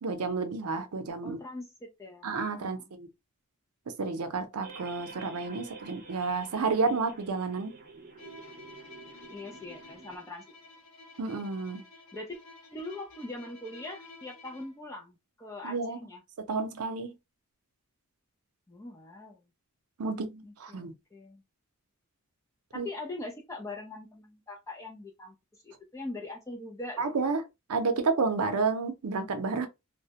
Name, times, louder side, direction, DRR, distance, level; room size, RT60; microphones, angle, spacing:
voice 1, 0.0-1.4 2.2-3.1 3.9-7.7 11.2-11.8 15.6-16.0 16.5-17.1 20.0-20.9 22.7-22.9 27.0-27.4 27.7-29.7, right 4 dB, 90° right, 0.5 m, -30 dB
voice 2, 1.2-2.9 9.3-10.7 11.9-12.4 12.7-16.2 18.7-19.4 20.4-21.4 22.7-27.0, left 2 dB, 15° left, 0.4 m, -42 dB
sound 1, 4.6-10.2, right 3 dB, 40° right, 0.6 m, -49 dB
Bowed string instrument, 8.2-14.8, left 3 dB, 75° left, 0.9 m, -52 dB
2.2 x 2.0 x 2.7 m
head